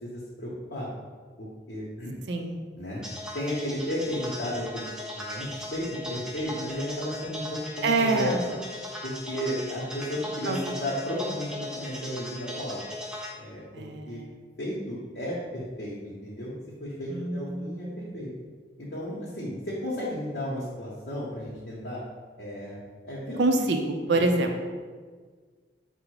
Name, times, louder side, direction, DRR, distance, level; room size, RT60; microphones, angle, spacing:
voice 1, 0.0-0.9 1.4-2.1 2.8-3.0 3.3-4.8 5.1-8.4 9.0-12.8 13.3-13.6 14.0-14.2 14.6-16.5 16.8-18.3 18.8-22.0 22.4-22.8 23.0-23.4 24.2-24.3, equal, 60° left, -6 dB, 0.8 m, -33 dB
voice 2, 2.3-2.6 7.8-8.4 10.5-10.6 13.7-14.4 17.1-18.1 23.4-24.7, right 2 dB, 75° right, 4 dB, 0.5 m, -26 dB
sound 1, 3.0-13.3, left 1 dB, 5° right, 0.4 m, -38 dB
4.9 x 2.1 x 4.7 m, 1.5 s
head